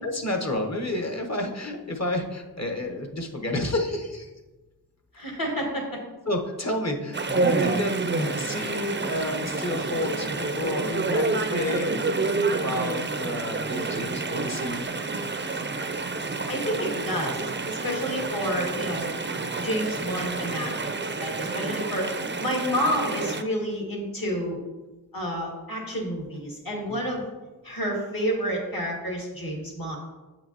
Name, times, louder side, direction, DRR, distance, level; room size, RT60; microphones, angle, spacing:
voice 1, 0.0-4.3 6.3-14.9 26.9-27.0, left 1 dB, 45° left, 3 dB, 1.1 m, -30 dB
voice 2, 5.1-6.0 16.5-19.1 19.6-24.6 25.1-27.2 27.6-30.0, equal, 60° left, -1 dB, 2.0 m, -29 dB
Chatter / Stream, 7.1-23.4, right 3 dB, 30° right, 0.5 m, -28 dB
8.3 x 5.9 x 2.9 m, 1.1 s
wide cardioid pair, 40°, 38 cm